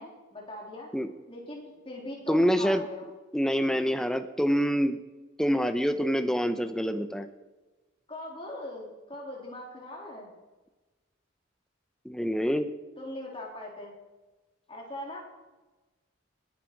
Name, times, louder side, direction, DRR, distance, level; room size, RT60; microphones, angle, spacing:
voice 1, 0.0-0.9 1.3-3.1 8.1-10.3 13.0-13.9 14.7-15.2, left 1 dB, 25° left, -2 dB, 3.6 m, -40 dB
voice 2, 2.3-2.8 3.3-5.0 5.4-7.3 12.0-12.7, equal, 5° left, 9 dB, 0.7 m, -26 dB
20.0 x 10.0 x 4.7 m, 1.2 s
head